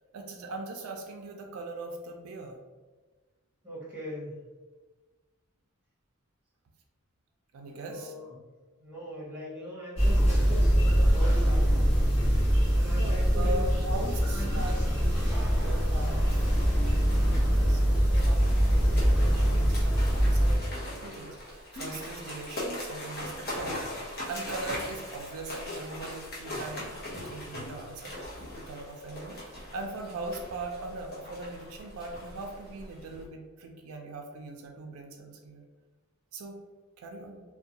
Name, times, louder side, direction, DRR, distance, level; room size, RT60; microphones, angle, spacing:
voice 1, 0.1-2.6 7.5-8.1 12.9-26.9 27.1-28.1 28.5-35.6 36.3-36.6 37.0-37.4, right 2 dB, 75° right, 2 dB, 0.3 m, -40 dB
voice 2, 3.6-4.4 7.7-8.3 8.8-11.7 12.6-14.0 14.3-14.6, equal, 5° right, -8 dB, 1.0 m, -40 dB
sound 1, 10.0-20.6, equal, 30° left, 1.0 m, -23 dB
sound 2, 16.2-33.2, left 1 dB, 50° left, 0.7 m, -40 dB
2.5 x 2.1 x 2.7 m, 1.3 s
head